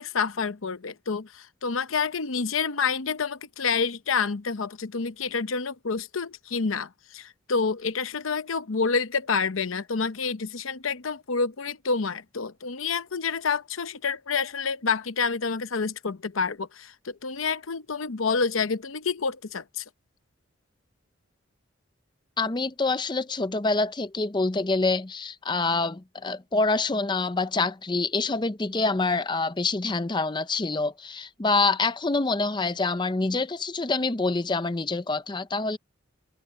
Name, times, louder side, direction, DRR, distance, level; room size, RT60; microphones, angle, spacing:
voice 1, 0.0-19.8, left 5 dB, 90° left, 0.8 m, -28 dB
voice 2, 22.4-35.8, left 3 dB, 20° left, 0.6 m, -26 dB
head